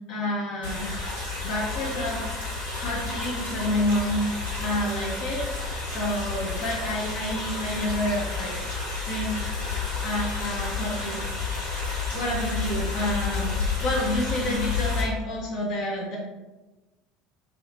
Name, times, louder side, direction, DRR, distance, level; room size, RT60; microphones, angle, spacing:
voice 1, 0.1-0.9 1.4-4.3 4.6-8.5 9.0-9.4 10.0-11.2 12.1-16.2, left 1 dB, 50° left, -3 dB, 0.7 m, -29 dB
sound 1, 0.6-15.0, left 4 dB, 85° left, 1.3 m, -31 dB
3.1 x 2.7 x 3.0 m, 1.2 s
figure-of-eight pair, 65°, 0 cm